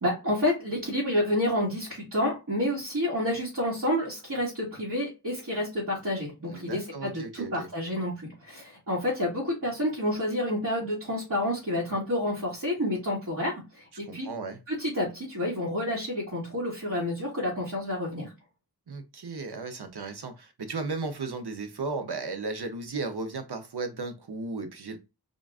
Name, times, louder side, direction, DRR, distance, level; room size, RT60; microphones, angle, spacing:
voice 1, 0.0-8.1 8.4-14.3 14.7-18.3, left 1 dB, 55° right, 1.7 m, -29 dB
voice 2, 6.4-7.7 14.1-14.6 18.9-25.0, right 3 dB, 90° right, 0.8 m, -35 dB
3.8 x 2.4 x 3.5 m
wide cardioid pair, 50°, 38 cm